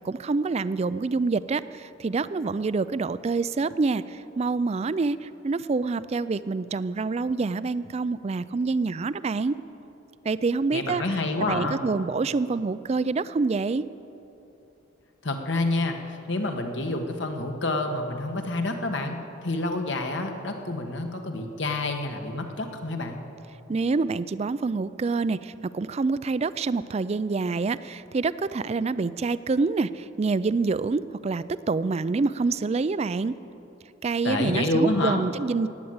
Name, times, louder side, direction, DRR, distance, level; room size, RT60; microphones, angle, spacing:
voice 1, 0.0-9.6 10.2-11.0 11.4-13.9 23.7-33.3 34.0-35.7, right 4 dB, 35° right, 16 dB, 0.3 m, -26 dB
voice 2, 10.7-11.8 15.2-23.2 34.2-35.2, left 2 dB, 65° left, 4 dB, 1.5 m, -28 dB
16.5 x 10.0 x 8.0 m, 2.9 s
head